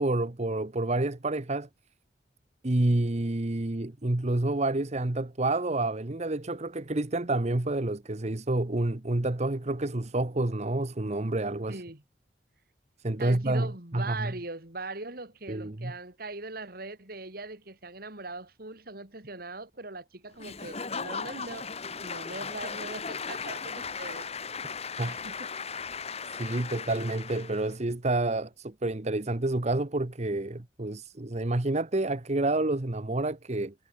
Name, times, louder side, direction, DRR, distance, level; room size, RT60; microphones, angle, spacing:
voice 1, 0.0-1.7 2.6-11.8 13.0-14.3 15.5-15.9 25.0-25.2 26.3-33.7, right 2 dB, 40° right, 1.1 m, -29 dB
voice 2, 11.7-12.0 13.2-21.7 22.0-24.3 25.0-25.5, right 2 dB, 55° right, 3.6 m, -40 dB
Applause / Crowd, 20.4-27.7, left 5 dB, 35° left, 2.4 m, -37 dB
head